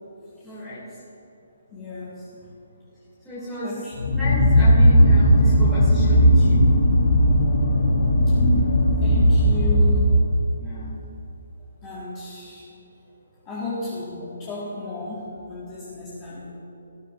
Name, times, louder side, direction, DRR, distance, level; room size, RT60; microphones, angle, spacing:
voice 1, 0.4-0.9 3.2-6.8 10.6-11.0, left 1 dB, ahead, -16 dB, 2.6 m, -33 dB
voice 2, 1.7-2.5 3.6-4.0 8.3-8.6 9.0-10.2 11.8-12.7 13.4-16.5, left 2 dB, 15° left, -9 dB, 1.8 m, -34 dB
sound 1, 4.0-10.5, equal, 70° left, 2.9 m, -17 dB
17.5 x 13.0 x 2.6 m, 3.0 s
hypercardioid pair, 175°, 0 cm